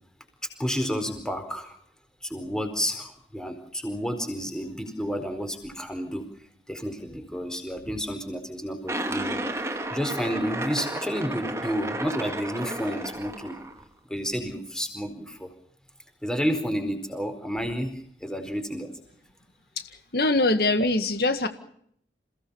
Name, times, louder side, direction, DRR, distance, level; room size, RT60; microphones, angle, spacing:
voice 1, 0.6-1.7 2.2-6.2 6.7-9.4 9.9-13.6 14.1-15.5 16.2-17.9 18.2-18.9, equal, 5° left, 7 dB, 4.4 m, -30 dB
sound 1, 8.9-13.8, right 1 dB, 15° right, 2.5 m, -33 dB
voice 2, 19.8-21.5, left 2 dB, 60° left, 9 dB, 1.9 m, -23 dB
29.0 x 17.5 x 7.1 m, 0.65 s
head